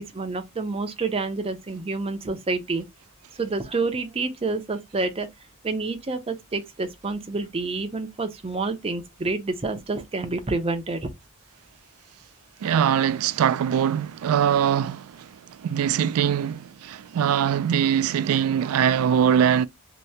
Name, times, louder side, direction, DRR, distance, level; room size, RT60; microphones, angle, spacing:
voice 1, 0.0-2.9 3.3-5.3 5.6-11.1, right 3 dB, 30° right, 0.6 m, -28 dB
voice 2, 12.6-15.3 15.6-19.6, right 8 dB, 85° right, 0.3 m, -22 dB
2.8 x 2.6 x 3.2 m
head